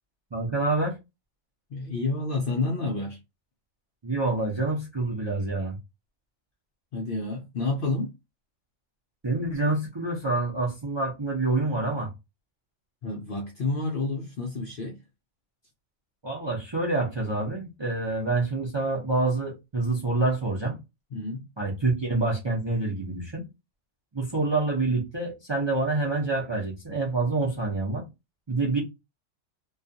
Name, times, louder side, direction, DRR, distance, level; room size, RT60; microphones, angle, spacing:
voice 1, 0.3-0.9 4.0-5.8 9.2-12.1 16.2-20.8 21.6-23.4 24.1-28.0 28.5-28.8, right 2 dB, 30° right, 0.5 m, -27 dB
voice 2, 1.7-3.2 6.9-8.1 13.0-15.0 21.1-21.4, left 3 dB, 60° left, 0.6 m, -29 dB
2.3 x 2.3 x 2.6 m
omnidirectional pair, 1.3 m